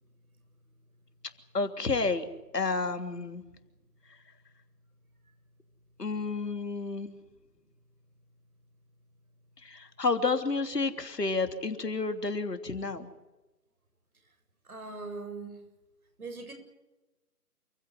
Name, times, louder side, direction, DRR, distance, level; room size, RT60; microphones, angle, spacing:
voice 1, 1.5-2.3 2.5-3.4 6.0-7.1 9.6-13.1, left 3 dB, 75° left, 7 dB, 3.2 m, -30 dB
voice 2, 14.6-15.6 16.2-16.5, right 3 dB, 60° right, 7 dB, 7.6 m, -40 dB
28.5 x 16.0 x 9.4 m, 1.1 s
figure-of-eight pair, 160°, 48 cm